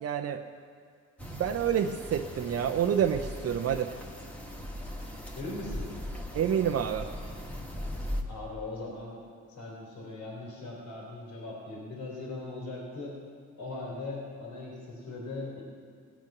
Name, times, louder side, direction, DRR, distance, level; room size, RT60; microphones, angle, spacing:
voice 1, 0.0-0.4 1.2-3.9 6.3-7.1, right 9 dB, 55° right, 5 dB, 0.6 m, -28 dB
sound 1, 1.2-8.2, left 1 dB, 5° left, 1.6 m, -39 dB
voice 2, 5.3-5.9 8.2-9.2 9.5-13.2 13.5-15.6, left 2 dB, 80° left, -3 dB, 3.3 m, -39 dB
17.5 x 9.0 x 6.0 m, 2.1 s
cardioid pair, 90°, 30 cm